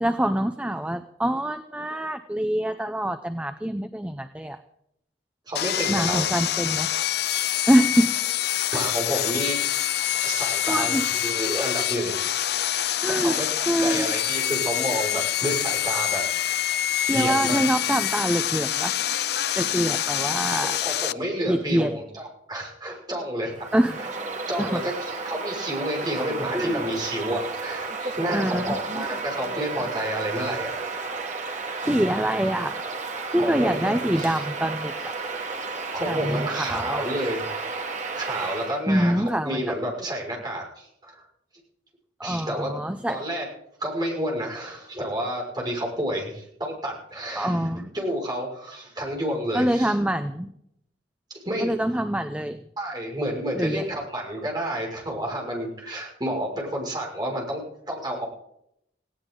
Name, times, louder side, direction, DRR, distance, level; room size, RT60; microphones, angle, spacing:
voice 1, 0.0-4.6 5.9-6.9 7.7-8.1 10.7-11.1 13.0-13.4 13.7-14.2 17.0-18.9 19.6-20.8 21.5-22.0 23.7-24.0 24.6-24.8 26.5-26.9 28.3-28.8 31.8-32.8 33.3-35.1 36.0-37.1 38.9-39.7 42.2-43.2 47.3-47.9 49.5-50.5 51.6-52.6 53.5-53.8, right 1 dB, 5° right, 8 dB, 0.6 m, -25 dB
voice 2, 5.5-6.2 8.6-9.6 10.2-12.5 13.1-16.2 17.1-17.6 20.0-20.1 20.8-23.6 24.5-24.9 25.2-30.9 33.4-34.4 35.9-37.4 38.2-41.2 42.2-42.7 43.1-43.4 43.8-47.6 47.9-49.9 51.3-51.7 52.8-58.3, equal, 25° right, -2 dB, 5.9 m, -30 dB
Sawing, 5.6-21.1, left 11 dB, 60° left, 0.5 m, -26 dB
Bird vocalization bird call bird song, 23.5-38.8, right 3 dB, 40° right, 2.1 m, -32 dB
19.0 x 17.5 x 3.9 m, 0.75 s
head